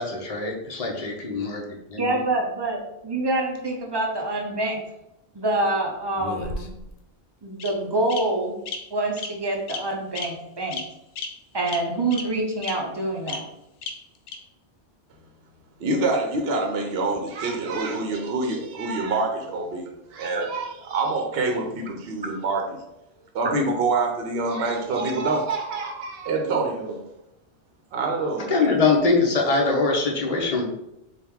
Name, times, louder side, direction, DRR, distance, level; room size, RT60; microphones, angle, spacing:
voice 1, 0.0-2.2 28.5-30.7, left 3 dB, 40° left, 0 dB, 0.7 m, -23 dB
voice 2, 2.0-4.8 5.3-6.7 7.4-8.5 8.9-10.8 11.5-13.4 20.4-20.5 23.4-23.5, right 2 dB, 30° right, 1 dB, 0.4 m, -26 dB
Bird vocalization bird call bird song, 6.2-6.9 7.6-7.7 8.1-8.2 8.7-8.8 9.2-9.3 9.7-9.8 10.1-10.3 10.7-10.8 11.2-11.3 11.7-11.8 12.1-12.2 12.6-12.7 13.3-13.4 13.8-13.9 14.3-14.4, left 5 dB, 80° left, 0.9 m, -32 dB
voice 3, 15.8-22.8 23.3-27.0 27.9-28.7 29.6-29.7, right 3 dB, 65° right, 2 dB, 0.8 m, -26 dB
4.5 x 2.4 x 3.5 m, 0.86 s
omnidirectional pair, 1.2 m